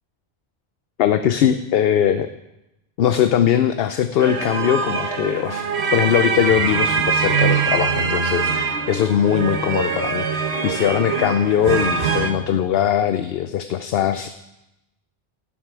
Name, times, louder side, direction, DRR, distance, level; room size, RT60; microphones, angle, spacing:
voice 1, 1.0-2.3 3.0-5.7 5.9-14.3, left 9 dB, 70° left, 9 dB, 0.8 m, -20 dB
sound 1, 4.2-12.3, right 5 dB, 80° right, 1.3 m, -23 dB
17.5 x 7.5 x 4.8 m, 0.93 s
omnidirectional pair, 1.1 m